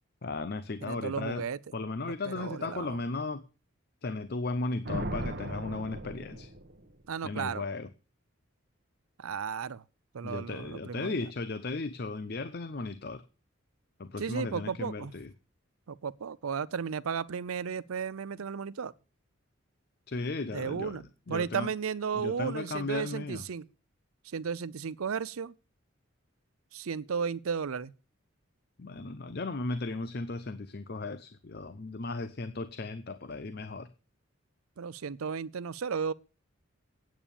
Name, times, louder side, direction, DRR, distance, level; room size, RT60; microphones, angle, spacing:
voice 1, 0.2-1.4 1.7-3.4 4.0-6.5 7.2-7.9 10.2-13.2 14.0-15.3 20.1-21.7 22.1-23.5 28.8-33.9, left 3 dB, 50° left, 0.6 m, -36 dB
voice 2, 0.8-1.6 2.2-2.9 7.1-7.6 9.2-9.8 10.1-11.2 14.2-15.1 15.9-18.9 20.5-23.7 24.2-25.5 26.7-27.9 34.8-36.1, right 6 dB, 90° right, 0.5 m, -34 dB
Thunder, 4.8-7.1, right 1 dB, 50° right, 1.0 m, -37 dB
9.0 x 8.7 x 7.0 m
head